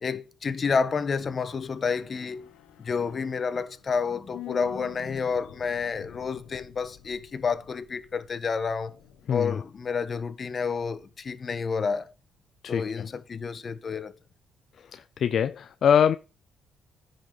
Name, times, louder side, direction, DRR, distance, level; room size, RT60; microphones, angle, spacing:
voice 1, 0.0-2.5 2.8-8.9 9.3-12.1 12.7-14.1, left 5 dB, 40° left, 1.3 m, -30 dB
sound 1, 1.6-11.4 11.7-11.8, left 11 dB, 90° left, 1.1 m, -48 dB
voice 2, 12.6-13.1 14.9-16.2, left 8 dB, 60° left, 0.5 m, -23 dB
10.0 x 6.3 x 5.4 m
cardioid pair, 90°, 0 cm